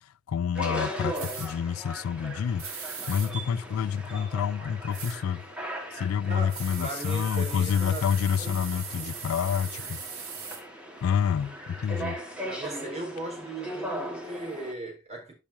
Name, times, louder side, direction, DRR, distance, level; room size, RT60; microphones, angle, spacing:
voice 1, 0.3-2.6 3.1-5.4 5.9-10.0 11.0-12.2, left 8 dB, 85° left, 0.3 m, -28 dB
sound 1, 0.5-14.7, right 1 dB, 5° right, 1.7 m, -39 dB
sound 2, 1.1-1.5 2.6-3.3 4.9-5.2 6.5-10.6, right 6 dB, 85° right, 2.4 m, -39 dB
voice 2, 6.2-9.2 9.7-9.8 12.5-15.3, right 2 dB, 30° right, 4.4 m, -38 dB
12.0 x 5.9 x 2.8 m
head